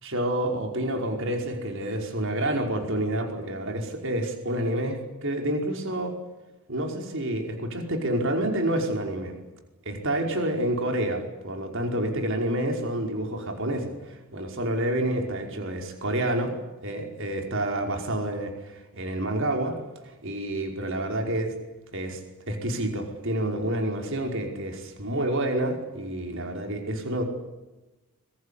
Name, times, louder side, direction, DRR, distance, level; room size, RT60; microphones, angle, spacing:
voice 1, 0.0-6.1 6.7-9.4 9.8-16.5 16.8-19.8 20.0-21.5 21.9-22.2 22.5-27.2, right 1 dB, 60° right, 3 dB, 5.1 m, -28 dB
26.5 x 23.0 x 8.5 m, 1.1 s
head